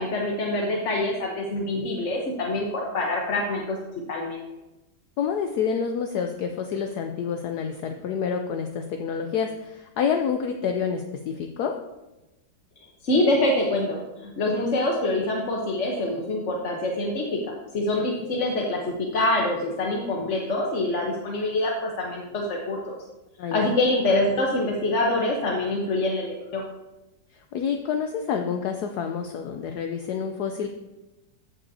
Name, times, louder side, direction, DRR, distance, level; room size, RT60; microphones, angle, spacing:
voice 1, 0.0-3.8 4.1-4.4 13.0-17.4 17.7-23.0 23.5-26.6, left 2 dB, 50° left, -1 dB, 1.1 m, -25 dB
voice 2, 5.2-11.8 23.4-23.7 27.3-30.7, left 7 dB, 70° left, 5 dB, 1.1 m, -28 dB
14.0 x 5.5 x 2.7 m, 1.0 s
omnidirectional pair, 2.0 m